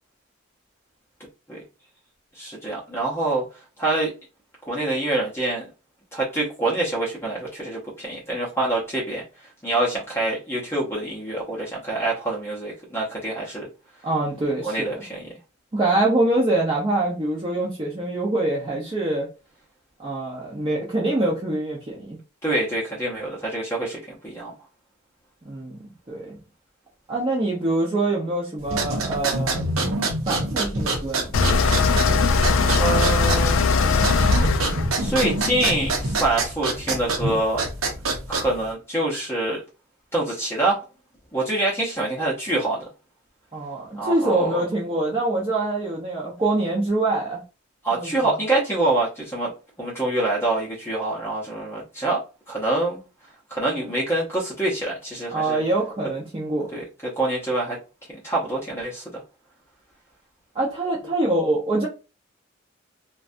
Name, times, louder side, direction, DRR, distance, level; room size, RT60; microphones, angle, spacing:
voice 1, 2.4-3.4 3.8-4.1 4.6-5.6 6.1-9.2 9.6-13.7 14.6-15.2 22.4-24.5 32.8-33.6 35.0-37.6 38.3-39.6 40.1-40.8 41.3-42.9 43.9-44.6 47.8-49.5 49.8-52.2 52.5-53.0 53.5-55.6 56.7-57.8 58.2-59.2, right 2 dB, 10° left, -5 dB, 0.7 m, -25 dB
voice 2, 14.0-15.0 15.7-19.3 20.0-22.2 25.4-25.8 26.1-26.4 27.1-29.7 30.3-31.3 43.5-47.4 47.9-48.1 55.3-56.7 60.5-61.9, right 2 dB, 25° right, -5 dB, 0.6 m, -24 dB
sound 1, 28.6-38.7, right 2 dB, 90° right, 0.7 m, -26 dB
sound 2, 31.3-36.3, left 4 dB, 65° left, 0.4 m, -20 dB
2.6 x 2.2 x 2.5 m, 0.31 s
head